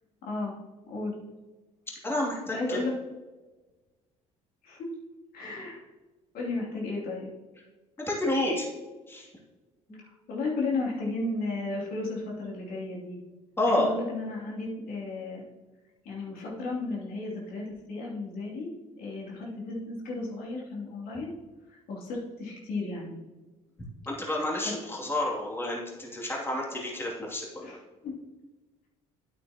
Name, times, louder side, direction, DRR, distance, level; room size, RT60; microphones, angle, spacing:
voice 1, 0.2-0.5 0.9-1.2 2.5-3.0 4.6-4.9 5.3-5.8 6.3-7.3 9.9-13.2 13.7-15.4 16.0-18.7 19.0-21.3 21.7-23.2 27.6-28.2, left 3 dB, 65° left, -4 dB, 2.8 m, -34 dB
voice 2, 2.0-2.8 8.0-8.7 9.1-9.3 9.9-10.0 13.6-13.9 24.1-27.8, left 1 dB, 15° left, -2 dB, 2.5 m, -29 dB
9.1 x 8.5 x 2.9 m, 1.2 s
hypercardioid pair, 70°, 16 cm